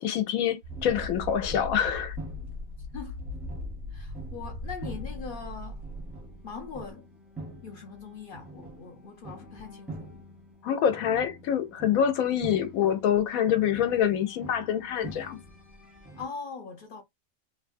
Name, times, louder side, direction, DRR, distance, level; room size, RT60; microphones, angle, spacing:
voice 1, 0.0-2.2 10.6-15.4, left 9 dB, 90° left, 1.0 m, -26 dB
sound 1, 0.6-6.9, left 1 dB, 85° right, 1.2 m, -39 dB
sound 2, 0.7-16.3, right 1 dB, ahead, 0.5 m, -46 dB
voice 2, 3.9-5.8 6.4-7.1 7.6-10.0 16.2-17.0, left 5 dB, 65° left, 0.5 m, -41 dB
2.9 x 2.1 x 2.5 m
omnidirectional pair, 1.4 m